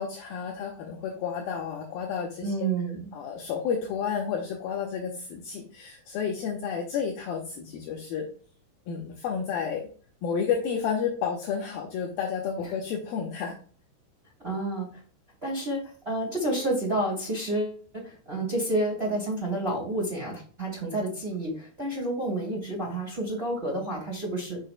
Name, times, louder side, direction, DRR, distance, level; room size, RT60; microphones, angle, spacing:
voice 1, 0.0-2.6 3.1-8.3 8.9-9.9 10.2-13.5, left 7 dB, 80° left, 0 dB, 2.3 m, -31 dB
voice 2, 2.4-3.1 14.4-14.9 15.4-24.6, right 1 dB, 20° right, -1 dB, 2.3 m, -30 dB
6.5 x 6.5 x 2.2 m, 0.41 s
omnidirectional pair, 5.0 m